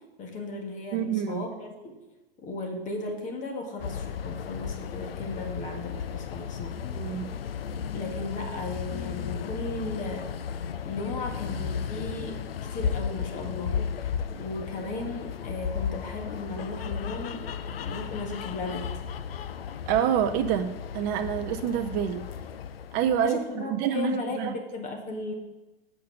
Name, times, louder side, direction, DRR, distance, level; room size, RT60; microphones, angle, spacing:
voice 1, 0.2-2.0 2.4-6.7 7.9-10.3 10.8-12.4 12.7-19.0 23.2-25.3, left 2 dB, 25° left, 2 dB, 1.6 m, -36 dB
voice 2, 0.9-1.4 6.9-7.3 19.9-22.2 22.9-24.5, right 9 dB, 30° right, 7 dB, 0.6 m, -27 dB
sound 1, 3.8-23.3, left 7 dB, 70° left, 0.6 m, -34 dB
8.5 x 5.2 x 5.9 m, 1.1 s
hypercardioid pair, 110°, 30 cm